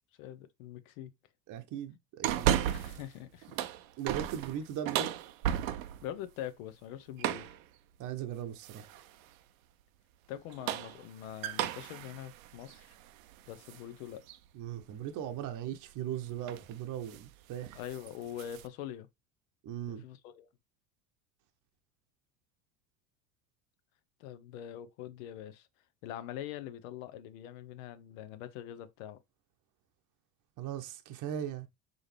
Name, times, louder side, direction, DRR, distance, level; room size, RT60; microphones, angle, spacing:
voice 1, 0.2-1.1 2.6-3.6 6.0-7.5 10.3-12.9 13.5-14.3 17.7-19.1 19.9-20.5 24.2-25.7 26.0-29.2, left 11 dB, 70° left, 0.8 m, -43 dB
voice 2, 1.5-2.6 4.0-5.2 8.0-9.0 14.5-17.8 19.6-20.0 30.6-31.7, right 10 dB, 45° right, 0.8 m, -39 dB
sound 1, 2.2-3.1 3.4-6.1 7.2-7.6 8.6-9.1 10.4-13.8 14.3-14.4 15.9-16.1 16.5-16.7 17.0-17.3 17.6-18.7, right 11 dB, 75° right, 0.6 m, -34 dB
4.8 x 2.6 x 3.2 m
hypercardioid pair, 85°, 42 cm